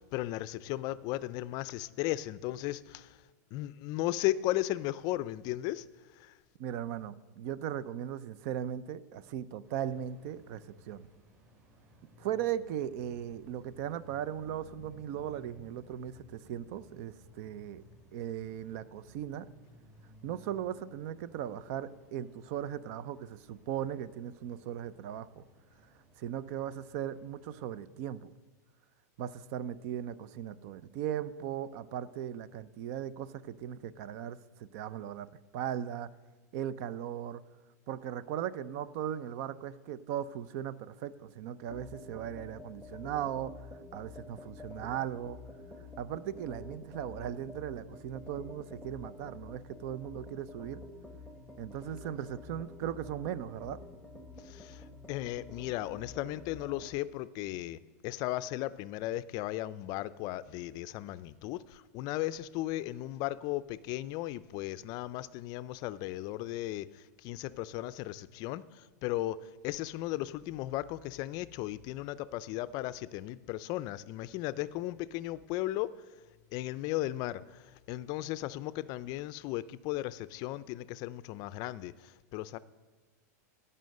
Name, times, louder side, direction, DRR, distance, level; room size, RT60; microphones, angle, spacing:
voice 1, 0.0-3.2 3.5-5.8 6.2-6.3 54.4-69.4 69.6-75.9 76.5-82.6, left 16 dB, 45° left, 17 dB, 0.4 m, -36 dB
voice 2, 6.6-11.1 12.2-17.8 18.1-19.5 20.2-25.4 26.2-28.3 29.2-36.1 36.5-37.4 37.9-43.6 43.9-45.4 46.0-50.8 51.6-53.8, right 10 dB, 55° right, 17 dB, 0.6 m, -38 dB
sound 1, 9.6-27.8, equal, 30° right, 4.9 m, -59 dB
sound 2, 41.7-57.0, left 2 dB, 5° right, 1.3 m, -49 dB
16.0 x 5.6 x 6.5 m, 1.2 s
supercardioid pair, 125°, 9 cm